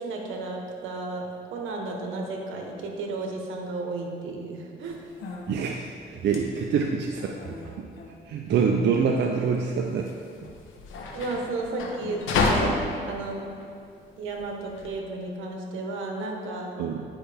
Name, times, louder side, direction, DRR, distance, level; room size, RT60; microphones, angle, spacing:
voice 1, 0.0-5.0 11.1-12.2 12.5-13.6 14.2-16.7, right 3 dB, 80° right, 1 dB, 1.2 m, -33 dB
sound 1, 4.8-14.9, left 3 dB, 80° left, 1.0 m, -32 dB
voice 2, 5.5-7.4 8.2-10.1 10.4-10.5 16.8-17.1, right 6 dB, 60° right, 1 dB, 0.6 m, -25 dB
10.0 x 5.5 x 3.5 m, 2.4 s
cardioid pair, 90°, 20 cm